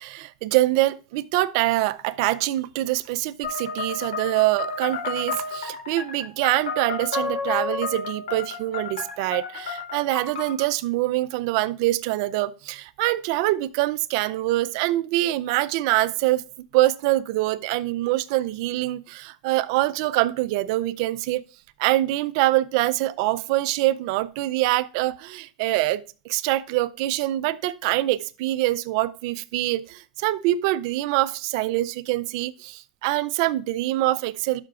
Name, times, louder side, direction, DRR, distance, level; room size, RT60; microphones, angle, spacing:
voice 1, 0.0-16.4 16.7-21.4 21.8-34.6, right 17 dB, 55° right, 0.5 m, -24 dB
sound 1, 3.4-10.6, left 4 dB, 80° left, 3.7 m, -31 dB
12.0 x 5.8 x 2.4 m
supercardioid pair, 135°, 3 cm